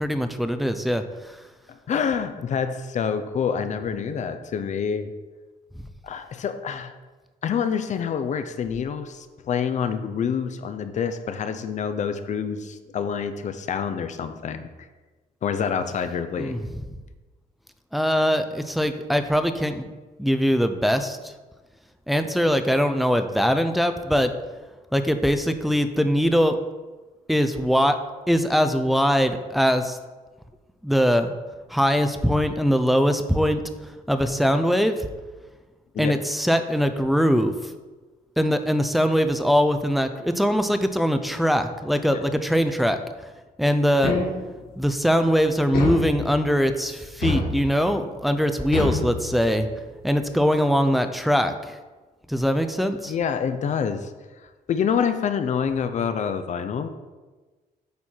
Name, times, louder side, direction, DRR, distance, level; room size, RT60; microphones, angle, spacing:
voice 1, 0.0-1.4 16.4-16.6 17.9-19.9 20.2-21.3 22.1-24.3 24.9-26.6 27.3-28.0 28.3-30.0 30.8-31.3 31.7-33.6 34.1-35.1 36.0-37.7 38.4-43.3 43.6-44.2 44.8-49.7 50.0-51.8 52.3-53.1, equal, ahead, 8 dB, 0.5 m, -22 dB
voice 2, 1.7-5.1 6.0-6.9 7.4-14.7 15.4-16.6 35.9-36.1 42.1-42.2 53.1-54.1 54.4-56.9, left 7 dB, 50° left, 9 dB, 0.6 m, -27 dB
sound 1, 44.0-44.7 45.7-46.6 47.2-48.0 48.7-49.7, left 3 dB, 85° left, 2.0 m, -27 dB
8.4 x 4.4 x 4.5 m, 1.3 s
cardioid pair, 130°, 16 cm